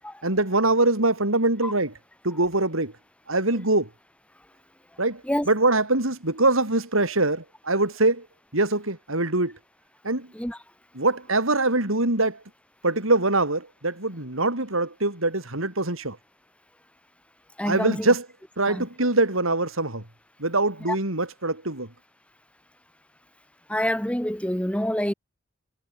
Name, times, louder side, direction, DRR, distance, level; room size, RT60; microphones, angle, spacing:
voice 1, 0.2-1.9 2.2-2.9 3.3-3.9 5.0-5.2 5.5-8.3 8.5-9.5 10.0-10.3 11.0-12.4 12.8-16.2 17.6-18.2 18.6-20.0 20.4-21.9, right 2 dB, 80° right, 5.4 m, -23 dB
voice 2, 17.6-18.1 18.7-18.8 20.9-21.0 23.7-25.1, equal, 5° left, 4.1 m, -27 dB
head